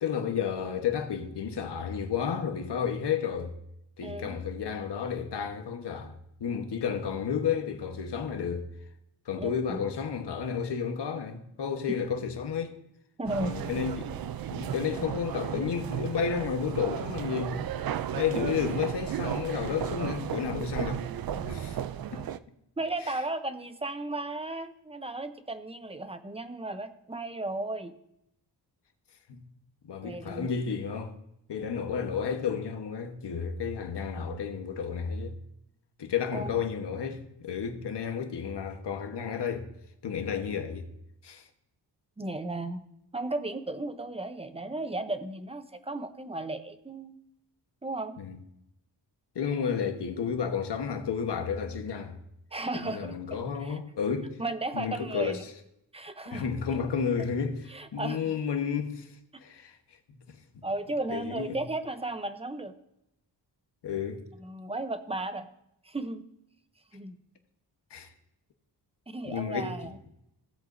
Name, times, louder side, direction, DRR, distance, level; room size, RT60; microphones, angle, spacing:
voice 1, 0.0-3.5 4.0-8.7 9.3-12.7 13.4-14.2 14.5-17.6 18.1-21.0 21.3-21.8 22.1-22.3 23.0-23.1 29.3-29.4 29.8-31.1 31.5-35.4 36.0-39.7 40.0-40.9 41.2-41.5 48.2-48.4 49.3-52.1 52.7-54.4 54.7-55.5 56.3-57.6 57.9-59.1 59.4-59.8 60.3-60.4 61.1-61.6 63.8-64.2 67.9-68.1 69.3-69.7, left 7 dB, 65° left, 1.3 m, -32 dB
voice 2, 4.0-4.4 9.4-9.8 13.2-13.6 22.8-27.9 30.0-30.5 36.3-36.6 42.2-42.9 43.1-47.2 47.8-48.2 52.5-53.2 53.6-53.8 54.4-55.4 55.9-56.4 57.7-58.3 60.6-62.7 64.4-65.5 65.8-66.2 66.9-67.1 69.1-69.9, right 2 dB, 15° right, 0.7 m, -35 dB
sound 1, 13.3-22.4, right 10 dB, 55° right, 0.5 m, -34 dB
16.5 x 7.9 x 2.6 m
wide cardioid pair, 130°, 43 cm